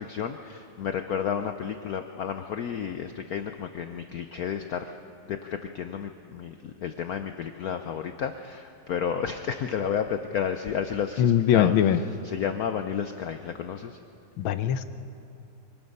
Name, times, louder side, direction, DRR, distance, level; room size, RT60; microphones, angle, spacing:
voice 1, 0.0-5.0 5.3-14.0, left 7 dB, 65° left, 7 dB, 0.9 m, -32 dB
voice 2, 11.2-12.0 14.4-14.8, left 10 dB, 80° left, 11 dB, 1.6 m, -21 dB
24.5 x 19.5 x 5.4 m, 2.8 s
omnidirectional pair, 2.2 m